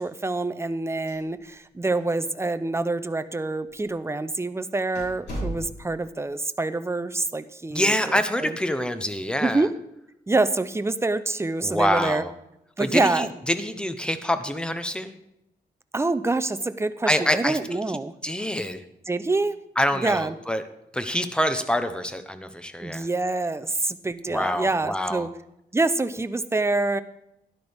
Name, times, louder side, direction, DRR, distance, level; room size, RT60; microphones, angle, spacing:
voice 1, 0.0-8.6 9.4-9.7 10.3-12.2 12.8-13.3 15.9-18.1 19.1-19.6 19.9-20.3 22.8-25.3 25.7-27.0, right 2 dB, 15° right, 12 dB, 0.6 m, -26 dB
sound 1, 1.1-1.7 2.0-2.1 2.8-2.9 3.7-3.9 4.3-4.4 4.9-6.1, right 1 dB, 85° left, 4.4 m, -35 dB
voice 2, 7.7-9.7 11.6-12.3 12.8-15.2 17.0-17.8 18.2-18.8 19.8-20.6 20.9-23.1 24.3-25.3, equal, 5° left, 9 dB, 0.9 m, -26 dB
12.0 x 11.5 x 3.6 m, 0.84 s
cardioid pair, 105°, 17 cm